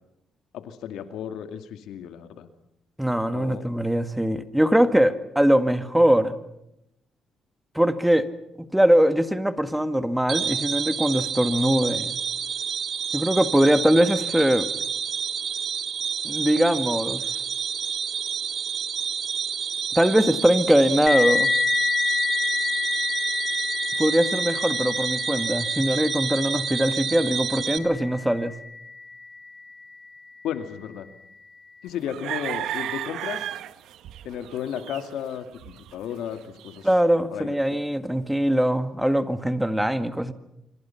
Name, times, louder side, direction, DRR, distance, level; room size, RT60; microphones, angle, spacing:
voice 1, 0.5-2.5 3.3-3.7 30.4-31.1 31.8-33.6 34.2-36.9 37.3-37.8, left 9 dB, 85° left, 9 dB, 2.3 m, -34 dB
voice 2, 3.0-6.4 7.8-8.3 8.6-12.2 13.1-14.7 16.2-17.2 20.0-21.5 24.0-28.5 36.8-40.3, equal, 5° right, 10 dB, 1.9 m, -21 dB
sound 1, 10.3-27.8, right 7 dB, 55° right, 1.8 m, -29 dB
sound 2, 21.1-30.3, left 5 dB, 30° left, 1.5 m, -29 dB
sound 3, 32.0-36.9, right 12 dB, 80° right, 1.1 m, -34 dB
26.5 x 25.0 x 5.8 m, 0.82 s
cardioid pair, 90°, 0 cm